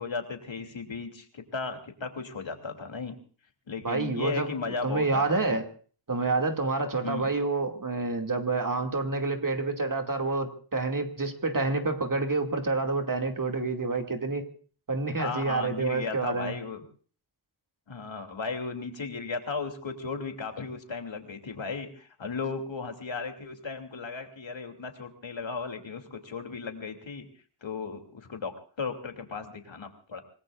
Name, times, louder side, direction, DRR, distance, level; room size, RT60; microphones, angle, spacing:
voice 1, 0.0-3.2 3.7-5.6 7.0-7.3 15.1-16.8 17.9-27.3 27.6-30.2, left 4 dB, 70° left, 5 dB, 3.0 m, -36 dB
voice 2, 3.8-4.5 4.8-5.6 6.1-14.4 14.9-16.5, right 3 dB, 45° right, 4 dB, 2.5 m, -28 dB
26.5 x 19.5 x 2.5 m, 0.42 s
wide cardioid pair, 95°, 47 cm